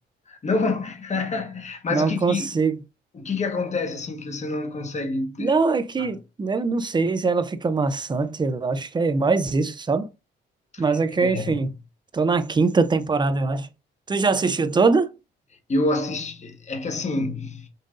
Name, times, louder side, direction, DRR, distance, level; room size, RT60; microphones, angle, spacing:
voice 1, 0.3-2.5 3.1-5.6 6.0-6.1 10.7-10.8 11.1-11.7 15.7-17.7, left 3 dB, 35° left, 1.2 m, -27 dB
voice 2, 1.9-2.8 5.4-10.1 10.8-11.7 12.1-13.7 14.1-15.1, right 4 dB, 20° right, 0.6 m, -22 dB
5.4 x 2.6 x 3.8 m
cardioid pair, 90°, 20 cm